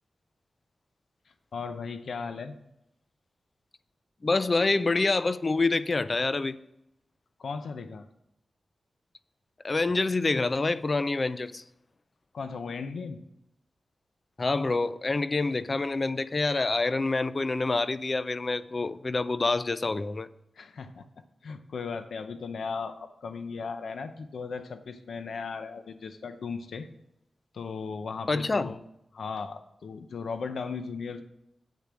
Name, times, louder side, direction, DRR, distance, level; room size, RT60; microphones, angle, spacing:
voice 1, 1.5-2.5 7.4-8.1 12.3-13.2 20.6-21.1 21.4-26.9 27.5-28.8 29.1-31.2, left 5 dB, 85° left, 0.6 m, -36 dB
voice 2, 4.2-6.6 9.6-11.6 14.4-20.3 28.3-28.7, left 3 dB, 35° left, 0.4 m, -27 dB
8.3 x 6.8 x 6.2 m
wide cardioid pair, 140°, 0 cm